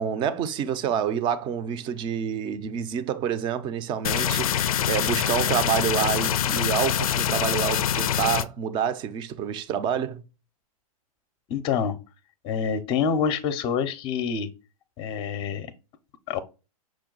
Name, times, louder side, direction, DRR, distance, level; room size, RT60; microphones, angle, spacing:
voice 1, 0.0-10.2, right 8 dB, 25° right, 0.5 m, -28 dB
sound 1, 4.0-8.4, left 10 dB, 75° left, 0.4 m, -24 dB
voice 2, 11.5-12.0 12.4-14.5 15.0-15.7 16.3-16.4, left 6 dB, 25° left, 0.6 m, -26 dB
6.1 x 2.2 x 3.8 m
hypercardioid pair, 135°, 19 cm